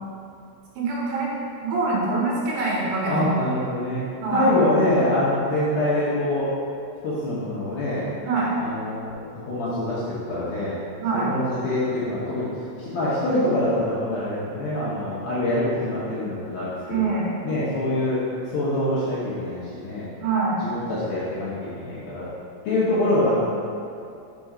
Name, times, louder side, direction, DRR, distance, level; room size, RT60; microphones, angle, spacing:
voice 1, 0.8-1.3 1.6-3.3 4.2-4.5 8.2-8.5 11.0-11.3 16.9-17.3 20.2-20.6, right 3 dB, 80° right, -4 dB, 2.9 m, -24 dB
voice 2, 3.1-4.0 4.3-6.5 7.0-8.1 8.6-9.1 9.5-10.8 11.1-12.5 12.8-17.1 17.4-20.1 20.7-22.3 22.7-23.4, left 1 dB, 70° left, -10 dB, 2.3 m, -25 dB
6.9 x 3.7 x 4.9 m, 2.6 s
omnidirectional pair, 5.3 m